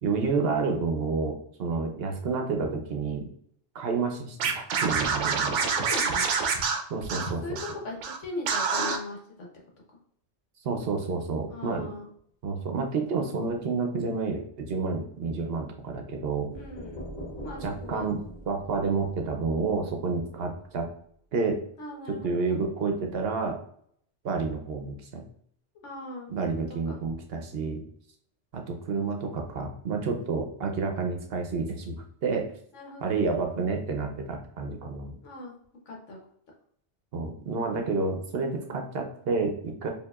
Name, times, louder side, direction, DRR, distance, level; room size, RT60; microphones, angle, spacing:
voice 1, 0.0-3.3 3.7-5.6 6.9-7.4 10.6-11.9 12.4-16.5 17.6-18.2 18.5-20.9 21.3-21.6 22.2-23.6 24.2-25.0 26.3-27.8 28.5-32.0 32.2-32.5 33.0-35.1 37.1-39.9, right 4 dB, 60° right, 3 dB, 0.8 m, -29 dB
Scratching (performance technique), 4.4-7.7 8.0-8.2 8.5-9.0, right 5 dB, 85° right, 0.9 m, -27 dB
voice 2, 5.6-6.3 7.1-8.0 8.2-9.5 11.5-12.1 16.5-17.0 17.4-18.1 21.8-22.6 25.8-26.5 26.9-27.0 32.7-33.3 35.2-35.5 35.9-36.2, left 2 dB, 85° left, -1 dB, 1.4 m, -39 dB
sound 1, 16.5-20.2, equal, 40° left, 0.8 m, -42 dB
4.6 x 2.8 x 2.3 m, 0.64 s
omnidirectional pair, 1.2 m